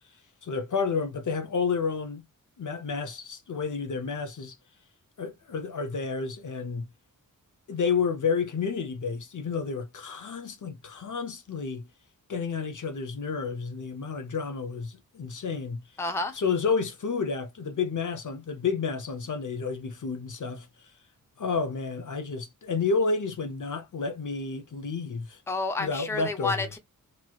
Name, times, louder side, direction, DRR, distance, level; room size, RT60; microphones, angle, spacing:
voice 1, 0.4-2.2 2.6-4.6 5.2-6.9 7.7-11.8 12.3-15.8 16.4-20.7 21.4-25.4 25.8-26.5, left 5 dB, 60° left, 0.8 m, -30 dB
voice 2, 16.0-16.4 25.5-26.8, left 3 dB, 10° left, 0.6 m, -30 dB
3.0 x 3.0 x 2.3 m
wide cardioid pair, 125°, 34 cm